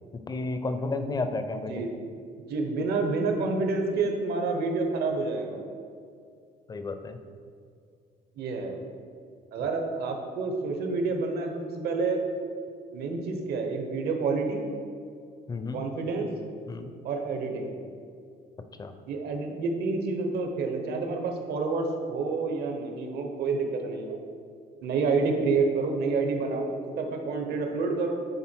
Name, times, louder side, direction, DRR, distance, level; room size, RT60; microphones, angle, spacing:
voice 1, 0.1-1.8 6.7-7.2 15.5-15.9 16.7-16.9 18.8-18.9, left 3 dB, 25° left, 8 dB, 0.5 m, -32 dB
voice 2, 2.5-5.6 8.4-8.8 9.5-12.2 12.9-14.6 15.7-16.3 17.0-17.8 19.1-24.2 24.8-28.2, right 4 dB, 70° right, 3 dB, 1.1 m, -28 dB
9.4 x 3.9 x 4.5 m, 2.3 s
cardioid pair, 110°, 17 cm